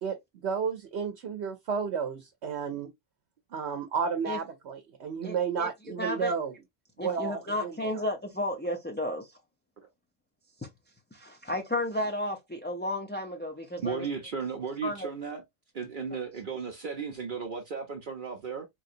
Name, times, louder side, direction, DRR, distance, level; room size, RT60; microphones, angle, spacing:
voice 1, 0.0-2.9 3.5-6.5 7.0-8.0, right 6 dB, 80° right, 1.0 m, -32 dB
voice 2, 5.2-5.7 6.0-6.3 7.0-9.3 11.1-14.1 14.8-15.1, left 1 dB, 15° left, 0.5 m, -33 dB
voice 3, 13.8-15.4 15.7-18.7, right 5 dB, 55° right, 0.8 m, -35 dB
3.8 x 3.1 x 2.5 m
omnidirectional pair, 1.1 m